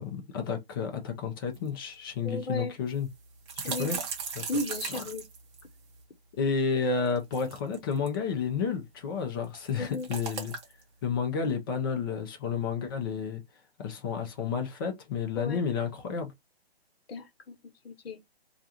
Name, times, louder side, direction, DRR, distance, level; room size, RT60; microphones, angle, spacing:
voice 1, 0.0-3.1 3.6-4.0 4.3-4.5 4.9-5.0 6.4-10.5 11.0-13.4 13.8-16.3, left 6 dB, 20° left, 0.5 m, -31 dB
sound 1, 1.5-1.6 1.9-2.0 2.9-6.0 7.1-8.1 9.4-10.8, right 6 dB, 25° right, 0.7 m, -37 dB
voice 2, 2.2-2.8 3.6-4.0 4.5-5.2 9.8-10.1 15.3-15.6 17.1-17.6 17.8-18.2, left 2 dB, 70° left, 0.9 m, -35 dB
2.4 x 2.3 x 2.8 m
hypercardioid pair, 145°, 32 cm